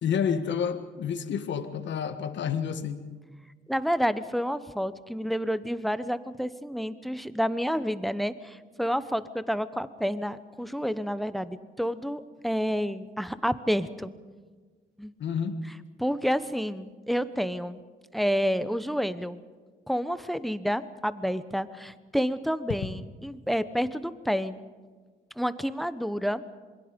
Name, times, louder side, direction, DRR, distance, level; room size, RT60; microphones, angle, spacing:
voice 1, 0.0-3.0 15.2-15.6, left 7 dB, 65° left, 9 dB, 1.7 m, -29 dB
voice 2, 3.7-14.1 15.0-15.1 16.0-17.8 18.1-19.4 19.9-24.6 25.4-26.4, equal, ahead, 13 dB, 1.0 m, -29 dB
27.0 x 22.0 x 5.3 m, 1.5 s
cardioid pair, 90°, 20 cm